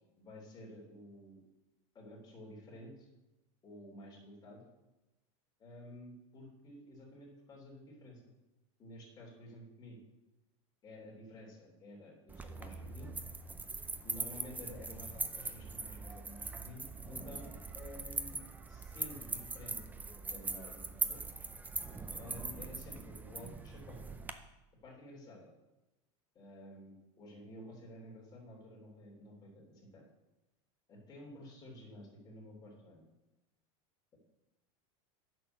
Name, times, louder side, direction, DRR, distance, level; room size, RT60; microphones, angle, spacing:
voice 1, 0.2-1.4 1.9-3.1 3.6-4.6 5.6-8.2 8.8-10.0 10.8-13.1 14.0-21.2 22.2-24.1 24.8-25.5 26.4-30.1 30.9-33.1, left 1 dB, 25° left, -2 dB, 3.4 m, -52 dB
sound 1, 12.3-24.3, right 4 dB, 10° right, 0.5 m, -41 dB
9.3 x 6.3 x 6.7 m, 1.0 s
supercardioid pair, 140°, 16 cm